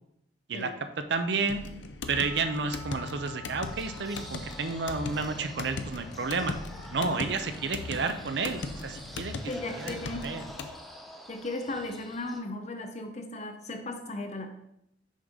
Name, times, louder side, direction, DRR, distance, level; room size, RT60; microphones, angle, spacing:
voice 1, 1.1-1.6 2.1-6.6 6.9-10.0 10.2-10.4, right 4 dB, 60° right, 9 dB, 0.5 m, -31 dB
sound 1, 1.5-10.8, left 3 dB, 70° left, 0.6 m, -39 dB
Percussion / Church bell, 2.1-7.4, left 2 dB, 55° left, 1.1 m, -50 dB
sound 2, 3.6-12.4, equal, ahead, 0.6 m, -47 dB
voice 2, 9.5-10.3 11.3-14.5, left 2 dB, 35° left, 5 dB, 0.7 m, -36 dB
6.3 x 5.5 x 3.7 m, 0.79 s
head